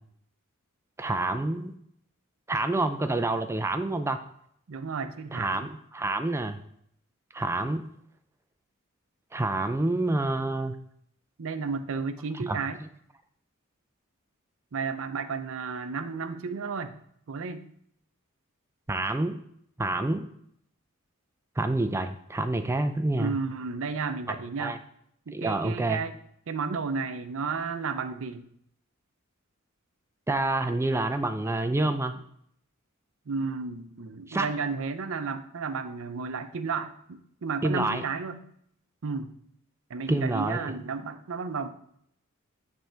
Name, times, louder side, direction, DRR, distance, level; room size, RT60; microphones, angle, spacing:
voice 1, 1.0-1.7 2.5-4.2 5.3-6.6 7.3-7.8 9.3-10.8 12.5-12.6 18.9-19.4 19.8-20.3 21.6-23.3 24.3-24.8 25.3-26.0 30.3-32.2 34.3-34.5 37.6-38.0 40.1-40.8, right 2 dB, 10° right, 8 dB, 0.3 m, -28 dB
voice 2, 4.7-5.7 11.4-12.8 14.7-16.9 17.3-17.7 23.2-24.8 25.3-26.1 26.5-28.5 33.3-38.4 39.0-39.3 39.9-41.7, right 4 dB, 65° right, 10 dB, 0.5 m, -33 dB
9.0 x 3.5 x 4.4 m, 0.69 s
head